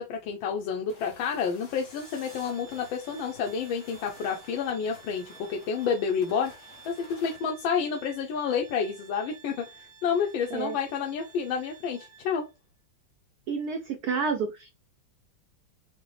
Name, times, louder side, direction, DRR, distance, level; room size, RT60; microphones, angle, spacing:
voice 1, 0.0-6.5 6.9-12.5, left 6 dB, 75° left, 1.3 m, -29 dB
sound 1, 0.9-7.5, left 3 dB, 50° left, 1.5 m, -52 dB
sound 2, 1.3-2.5, left 1 dB, 15° left, 1.0 m, -53 dB
Organ, 1.9-12.5, right 6 dB, 55° right, 0.6 m, -53 dB
voice 2, 13.5-14.7, right 5 dB, 85° right, 0.8 m, -29 dB
5.1 x 2.0 x 3.2 m
omnidirectional pair, 2.3 m